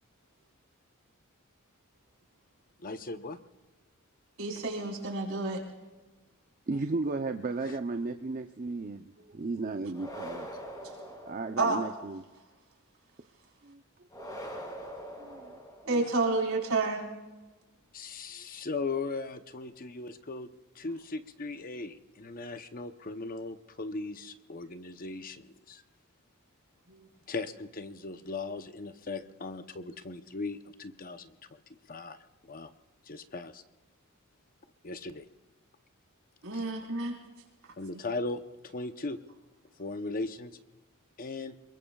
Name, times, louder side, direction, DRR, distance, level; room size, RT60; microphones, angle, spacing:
voice 1, 2.8-3.4 7.7-7.8 15.9-16.0 17.9-20.5 20.7-25.8 27.3-31.4 31.9-32.2 32.4-32.7 33.1-33.6 34.8-35.3 36.5-36.6 37.8-39.2 39.8-40.5 41.2-41.6, left 3 dB, 40° left, 9 dB, 0.8 m, -38 dB
voice 2, 4.4-5.6 11.6-11.8 15.9-17.1 36.4-37.1, right 3 dB, 70° right, -1 dB, 4.5 m, -29 dB
voice 3, 6.7-10.5 10.8-12.2 13.6-13.8 14.2-14.5 15.2-16.0, right 3 dB, 40° right, 6 dB, 0.6 m, -35 dB
sound 1, 9.9-12.0 14.1-16.2, equal, 20° left, 2.4 m, -43 dB
27.0 x 22.5 x 2.4 m, 1.2 s
head